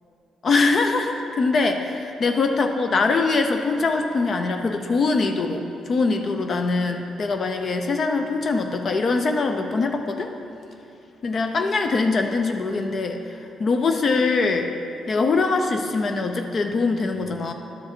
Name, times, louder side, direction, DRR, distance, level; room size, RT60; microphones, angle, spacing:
voice 1, 0.4-10.3 11.2-14.7 15.1-17.5, left 3 dB, 45° left, 5 dB, 0.5 m, -23 dB
11.5 x 4.9 x 4.4 m, 2.8 s
cardioid pair, 90°, 0 cm